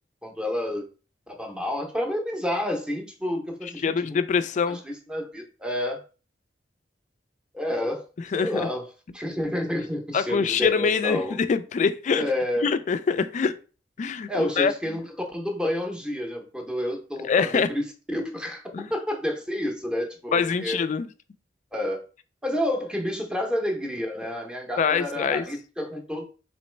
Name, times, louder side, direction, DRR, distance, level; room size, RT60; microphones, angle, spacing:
voice 1, 0.2-0.8 1.3-4.2 4.7-6.0 7.5-8.0 8.3-8.9 9.1-11.4 12.2-12.7 14.3-17.8 18.1-20.8 21.7-22.0 22.4-26.2, left 1 dB, 5° right, 0.7 m, -29 dB
voice 2, 3.8-4.8 8.3-8.7 10.1-12.2 12.6-13.5 14.0-14.7 17.2-17.7 18.7-18.9 20.3-21.1 24.8-25.5, left 5 dB, 40° left, 0.3 m, -24 dB
4.1 x 3.0 x 3.2 m
head